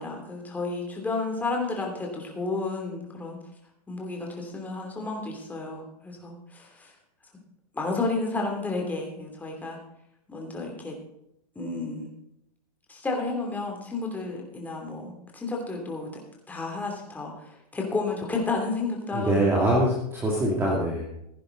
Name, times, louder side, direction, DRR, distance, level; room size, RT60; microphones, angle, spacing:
voice 1, 0.0-3.4 3.9-6.9 7.7-9.8 10.3-10.9 11.5-12.1 12.9-16.1 16.5-19.7, left 3 dB, 10° left, 0 dB, 3.0 m, -31 dB
voice 2, 19.1-21.1, right 1 dB, 10° right, -3 dB, 2.6 m, -23 dB
16.0 x 10.5 x 4.0 m, 0.80 s
hypercardioid pair, 145°, 20 cm